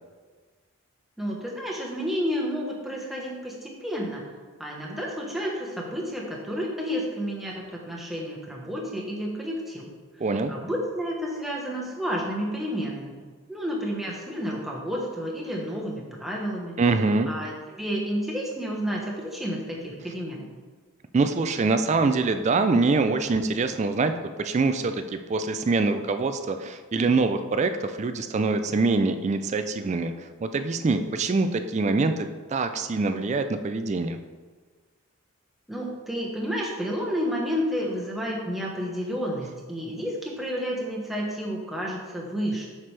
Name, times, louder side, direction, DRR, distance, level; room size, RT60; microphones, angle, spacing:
voice 1, 1.2-4.2 4.6-9.9 10.5-13.2 13.5-16.8 17.3-20.5 35.7-42.7, equal, ahead, -3 dB, 1.1 m, -31 dB
voice 2, 10.2-10.5 16.8-17.3 21.1-24.1 24.4-30.1 30.4-34.2, right 3 dB, 30° right, 8 dB, 0.3 m, -24 dB
7.6 x 5.9 x 3.3 m, 1.4 s
head